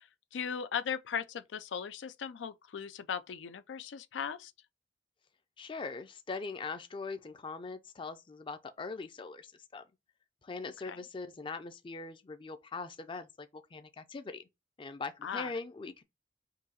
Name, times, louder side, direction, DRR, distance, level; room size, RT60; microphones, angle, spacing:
voice 1, 0.0-4.5 10.9-11.0 15.2-15.5, left 7 dB, 85° left, 0.4 m, -38 dB
voice 2, 5.6-9.8 10.4-14.4 14.8-16.0, left 4 dB, 30° left, 0.4 m, -41 dB
3.9 x 2.7 x 4.0 m
head